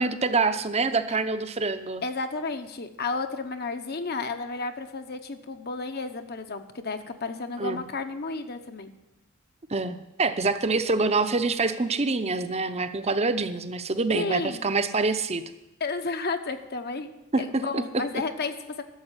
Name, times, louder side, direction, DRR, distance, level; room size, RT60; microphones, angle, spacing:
voice 1, 0.0-2.0 7.6-7.8 9.7-15.4 17.3-17.8, right 3 dB, 30° right, 10 dB, 0.7 m, -26 dB
voice 2, 2.0-8.9 14.1-14.7 15.8-17.1 17.4-18.8, left 3 dB, 50° left, 8 dB, 1.0 m, -32 dB
12.0 x 7.4 x 9.0 m, 0.98 s
head